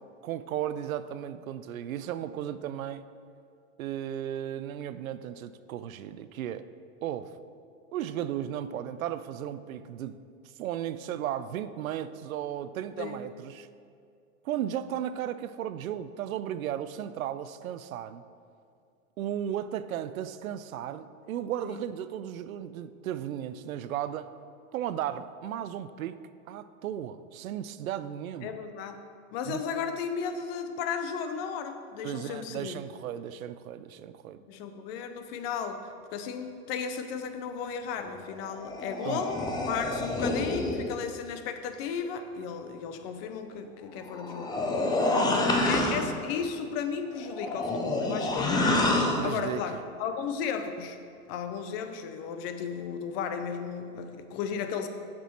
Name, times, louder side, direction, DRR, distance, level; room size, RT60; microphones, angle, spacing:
voice 1, 0.2-3.1 3.8-6.7 7.0-7.4 7.9-10.2 10.6-13.7 14.4-18.2 19.2-24.3 24.7-26.2 26.5-28.5 29.4-29.6 32.0-34.4 39.0-39.2 39.8-40.0 45.1-45.6 49.2-49.6, right 10 dB, 85° right, 13 dB, 0.5 m, -35 dB
voice 2, 28.4-29.0 29.3-32.8 34.5-44.6 45.2-48.7 49.0-51.0 51.3-54.9, left 6 dB, 45° left, 8 dB, 0.7 m, -35 dB
sound 1, 38.3-40.9 44.0-46.1 47.2-49.3, left 2 dB, 10° left, 0.5 m, -28 dB
7.1 x 6.1 x 4.4 m, 2.4 s
hypercardioid pair, 120°, 41 cm